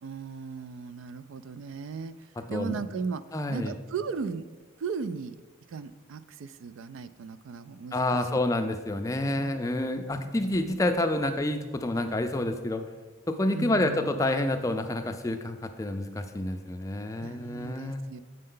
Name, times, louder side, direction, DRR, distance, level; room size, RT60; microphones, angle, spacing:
voice 1, 0.0-3.2 3.5-4.4 4.8-5.4 5.7-8.4 9.2-9.7 10.6-10.8 13.5-14.4 17.2-18.2, right 5 dB, 85° right, 14 dB, 0.3 m, -37 dB
voice 2, 3.3-3.7 7.9-12.8 13.3-18.0, left 1 dB, 15° left, 6 dB, 0.4 m, -28 dB
7.6 x 5.4 x 3.8 m, 1.3 s
head